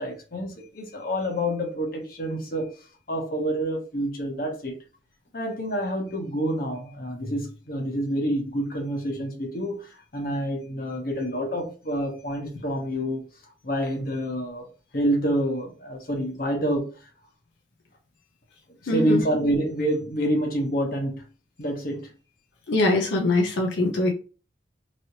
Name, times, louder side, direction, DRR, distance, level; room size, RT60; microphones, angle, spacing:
voice 1, 0.0-2.7 3.1-4.8 5.3-13.2 13.6-14.7 14.9-16.9 18.8-21.2 21.6-22.1, right 1 dB, 50° left, 0.9 m, -27 dB
voice 2, 18.9-19.2 22.7-24.1, left 2 dB, 80° left, 0.6 m, -22 dB
3.0 x 2.8 x 2.8 m
head